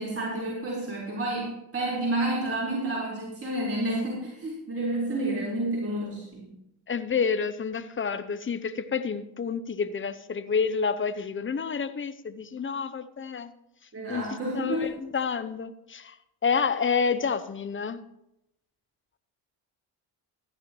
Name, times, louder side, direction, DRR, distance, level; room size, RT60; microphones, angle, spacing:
voice 1, 0.0-6.5 13.9-14.9, right 1 dB, 30° right, 4.4 m, -30 dB
voice 2, 6.9-13.5 14.1-16.2 16.4-18.0, left 5 dB, 25° left, 0.7 m, -29 dB
14.5 x 11.0 x 3.1 m
supercardioid pair, 65°, 47 cm